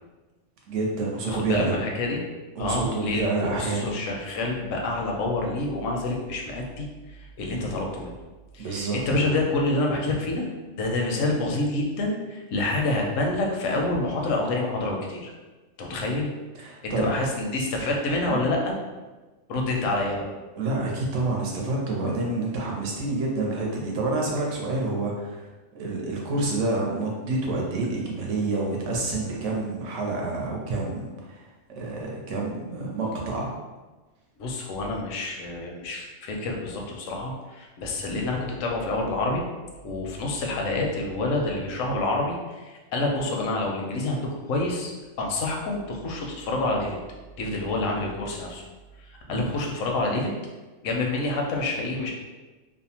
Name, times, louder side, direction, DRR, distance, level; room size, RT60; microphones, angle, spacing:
voice 1, 0.7-1.7 2.6-4.0 8.6-9.3 16.6-17.1 18.3-18.5 20.6-25.5 25.7-31.5 31.8-33.5 49.3-49.5, right 2 dB, 75° right, -1 dB, 0.9 m, -28 dB
voice 2, 1.3-2.2 2.6-8.2 8.5-10.5 10.7-15.3 15.8-16.3 16.8-18.7 19.5-20.2 34.4-39.4 39.8-44.9 45.2-47.0 47.4-48.6 49.0-50.3 50.8-52.1, left 2 dB, 85° left, 0 dB, 0.9 m, -27 dB
2.7 x 2.1 x 2.8 m, 1.2 s
omnidirectional pair, 1.3 m